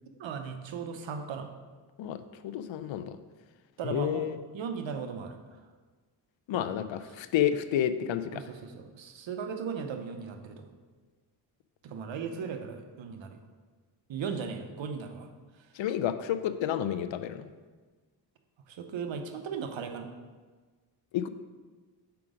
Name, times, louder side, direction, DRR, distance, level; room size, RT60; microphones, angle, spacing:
voice 1, 0.2-1.5 3.8-4.3 4.5-5.4 6.5-6.7 8.3-10.7 11.8-13.4 14.1-15.3 18.7-20.1, right 6 dB, 70° right, 6 dB, 0.9 m, -37 dB
voice 2, 2.4-3.2 3.8-4.4 6.5-8.4 15.8-17.5 21.1-21.3, left 10 dB, 70° left, 12 dB, 0.6 m, -30 dB
6.0 x 4.9 x 4.9 m, 1.4 s
cardioid pair, 80°, 47 cm